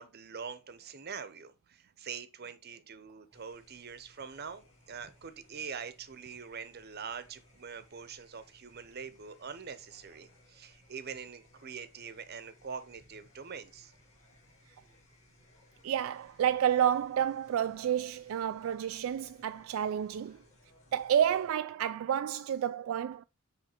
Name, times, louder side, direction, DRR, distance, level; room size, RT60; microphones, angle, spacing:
voice 1, 0.0-13.9, right 6 dB, 55° right, 0.8 m, -44 dB
sound 1, 3.3-21.5, left 1 dB, 35° left, 3.8 m, -63 dB
voice 2, 15.8-20.4 20.9-23.2, right 9 dB, 75° right, 0.3 m, -30 dB
7.9 x 3.3 x 4.4 m
head